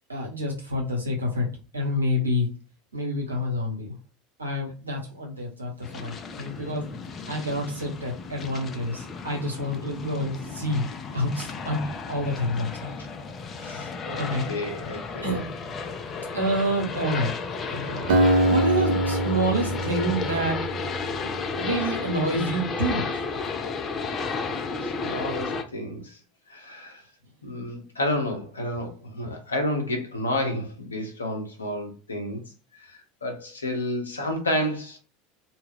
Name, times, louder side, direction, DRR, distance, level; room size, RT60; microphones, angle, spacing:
voice 1, 0.1-1.5 1.7-2.5 2.9-4.0 4.4-7.0 7.3-10.9 11.1-13.0 13.5-13.9 14.2-14.5 15.2-15.5 16.3-17.3 17.7-18.2 18.4-20.6 21.2-21.3 21.6-23.2, equal, 85° right, 0.9 m, -28 dB
sound 1, 5.8-25.6, left 4 dB, 30° left, 0.5 m, -33 dB
voice 2, 14.0-15.3 25.0-26.2 26.5-27.0 27.4-32.4 32.7-35.0, left 1 dB, 85° left, 0.7 m, -30 dB
Acoustic guitar, 18.1-21.7, right 1 dB, 60° right, 0.5 m, -24 dB
2.3 x 2.2 x 3.3 m
figure-of-eight pair, 75°, 0 cm